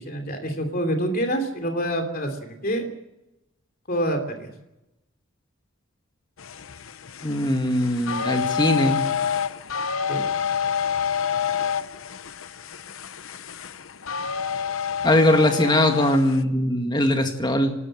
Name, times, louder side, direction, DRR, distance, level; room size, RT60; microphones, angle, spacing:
voice 1, 0.0-2.8 3.9-4.5 10.1-10.2, equal, 45° left, 5 dB, 3.0 m, -26 dB
sound 1, 6.4-16.4, left 7 dB, 70° left, 0.8 m, -28 dB
voice 2, 7.2-9.1 15.0-17.7, left 1 dB, 20° left, 5 dB, 2.0 m, -21 dB
28.0 x 13.0 x 7.7 m, 0.94 s
head